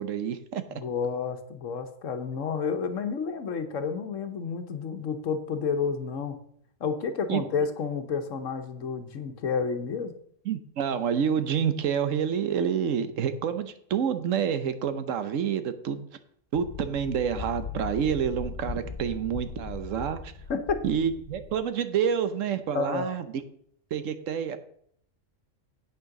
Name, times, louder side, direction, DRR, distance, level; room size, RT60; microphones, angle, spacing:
voice 1, 0.0-0.6 7.3-7.4 10.4-16.1 16.5-20.3 20.8-23.2 23.9-24.6, right 8 dB, 80° right, 11 dB, 1.2 m, -28 dB
voice 2, 0.7-6.4 6.8-10.1 20.5-20.8 22.7-23.1, left 5 dB, 80° left, 8 dB, 1.3 m, -30 dB
sound 1, 16.5-21.6, left 5 dB, 40° left, 0.8 m, -39 dB
8.4 x 6.4 x 5.9 m, 0.65 s
omnidirectional pair, 1.3 m